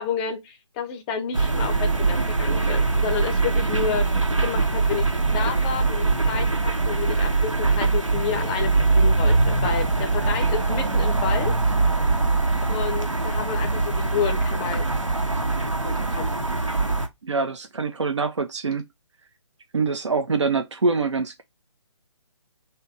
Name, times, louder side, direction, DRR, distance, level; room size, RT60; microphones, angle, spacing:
voice 1, 0.0-4.1 4.4-5.1 5.3-11.5 12.7-14.9 15.8-16.3, left 7 dB, 15° left, 0.5 m, -30 dB
sound 1, 1.3-17.1, right 3 dB, 85° right, 1.1 m, -22 dB
voice 2, 17.2-18.8 19.7-21.4, right 4 dB, 70° right, 0.7 m, -24 dB
3.4 x 2.8 x 4.6 m
figure-of-eight pair, 140°, 16 cm